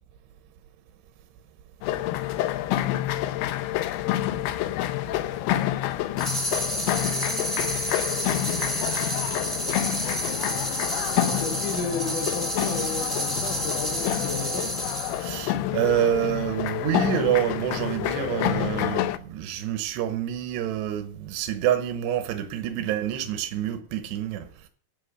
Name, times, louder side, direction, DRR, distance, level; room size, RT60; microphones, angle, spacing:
sound 1, 1.8-19.2, left 13 dB, 75° left, 2.7 m, -28 dB
sound 2, 6.2-15.3, right 1 dB, ahead, 2.1 m, -30 dB
voice 1, 11.2-14.7, left 4 dB, 45° left, 3.5 m, -33 dB
voice 2, 15.2-24.7, right 11 dB, 85° right, 3.3 m, -27 dB
12.0 x 7.8 x 7.9 m
omnidirectional pair, 4.8 m